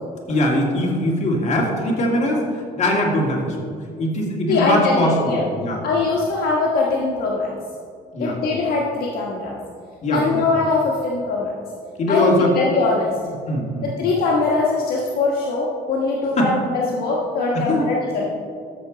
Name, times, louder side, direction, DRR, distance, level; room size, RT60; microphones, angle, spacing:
voice 1, 0.3-2.4 2.8-3.6 4.0-5.8 8.1-8.4 10.0-10.4 12.0-12.5 13.5-13.9 16.4-16.5 17.5-17.8, left 1 dB, 40° left, -1 dB, 2.3 m, -21 dB
voice 2, 4.5-5.5 5.8-7.5 8.2-9.6 10.1-11.5 12.1-13.1 13.8-18.3, left 3 dB, 65° left, -3 dB, 1.4 m, -21 dB
13.5 x 6.7 x 3.9 m, 2.2 s
cardioid pair, 110°, 17 cm